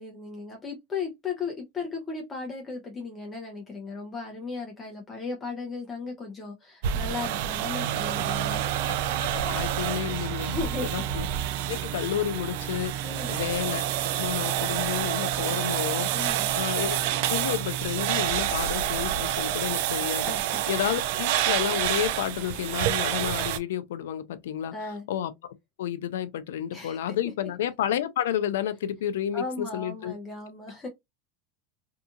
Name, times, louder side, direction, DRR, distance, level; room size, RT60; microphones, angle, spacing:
voice 1, 0.0-8.7 10.4-10.9 13.0-13.4 16.1-16.5 20.2-20.6 24.7-25.1 26.7-27.0 29.3-30.9, left 4 dB, 20° left, 0.6 m, -36 dB
sound 1, 6.8-23.6, right 11 dB, 65° right, 0.3 m, -28 dB
voice 2, 8.9-11.3 11.7-16.1 16.6-17.0 17.3-20.3 20.7-24.7 25.1-30.1, left 10 dB, 90° left, 0.4 m, -31 dB
2.7 x 2.4 x 2.5 m
supercardioid pair, 145°, 0 cm